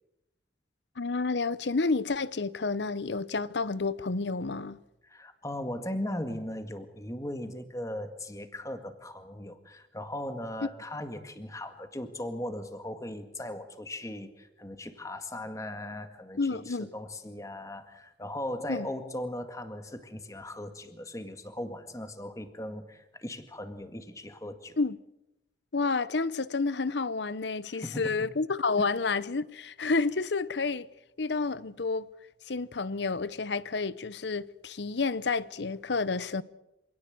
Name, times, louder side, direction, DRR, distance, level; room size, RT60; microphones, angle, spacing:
voice 1, 1.0-4.8 16.4-16.9 18.7-18.9 24.8-25.0 25.7-30.9 31.2-32.1 32.5-36.4, left 4 dB, 70° left, 0.8 m, -30 dB
voice 2, 5.0-24.8 27.7-28.1 28.8-28.9, left 1 dB, 15° left, 1.9 m, -38 dB
26.5 x 17.5 x 7.8 m
head